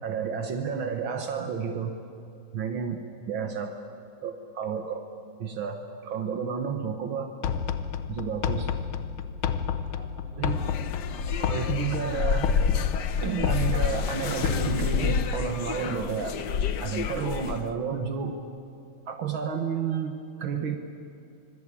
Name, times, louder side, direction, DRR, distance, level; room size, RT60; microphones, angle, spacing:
voice 1, 0.0-1.9 2.5-3.7 4.2-5.1 5.4-7.3 8.1-8.7 10.4-10.7 11.3-12.6 13.2-16.5 16.8-18.4 19.1-20.8, right 6 dB, 70° right, 5 dB, 2.1 m, -31 dB
sound 1, 7.4-15.3, left 7 dB, 85° left, 1.8 m, -31 dB
voice 2, 8.9-11.0, right 2 dB, 25° right, 0 dB, 3.8 m, -53 dB
sound 2, 10.5-17.7, left 6 dB, 60° left, 1.5 m, -29 dB
25.0 x 23.0 x 8.6 m, 2.6 s
omnidirectional pair, 2.3 m